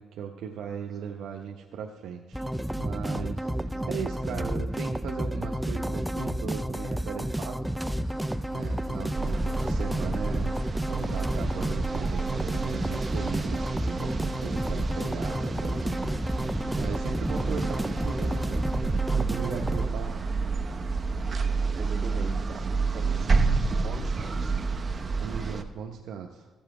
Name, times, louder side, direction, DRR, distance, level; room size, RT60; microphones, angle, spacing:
voice 1, 0.0-2.5 2.7-7.7 8.1-8.2 8.5-18.7 19.2-20.3 24.4-24.5 25.2-26.5, right 7 dB, 80° right, 2 dB, 0.7 m, -38 dB
sound 1, 2.3-19.9, equal, 5° right, 0.3 m, -31 dB
voice 2, 3.4-3.9 21.7-24.5, right 3 dB, 45° right, -2 dB, 1.8 m, -41 dB
Engine starting / Idling, 8.0-13.4, left 3 dB, 15° left, 2.7 m, -55 dB
sound 2, 9.1-25.6, right 4 dB, 30° right, 0.8 m, -29 dB
14.5 x 7.2 x 4.8 m, 1.4 s
cardioid pair, 105°, 0 cm